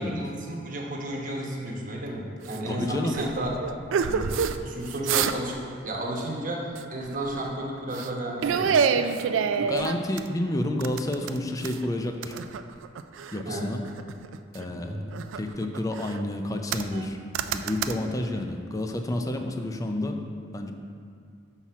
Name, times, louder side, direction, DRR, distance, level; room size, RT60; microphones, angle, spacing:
voice 1, 0.0-3.5 4.1-5.5 5.8-8.8 13.4-13.7 14.7-15.1, right 1 dB, 45° right, -2 dB, 1.0 m, -33 dB
sound 1, 2.5-2.6 3.1-4.6 4.9-5.6 5.8-6.1 6.8-7.5 7.9-8.1 8.4-10.3 10.8-11.9 12.2-13.4 13.8-14.6 15.1-16.2 16.7-17.1 17.3-17.9, right 6 dB, 80° right, 0.3 m, -27 dB
voice 2, 2.7-3.2 9.6-12.4 13.3-13.8 14.5-15.0 15.3-17.2 17.5-20.2 20.5-20.7, left 1 dB, 20° left, 4 dB, 0.4 m, -30 dB
5.8 x 4.2 x 5.9 m, 2.2 s
head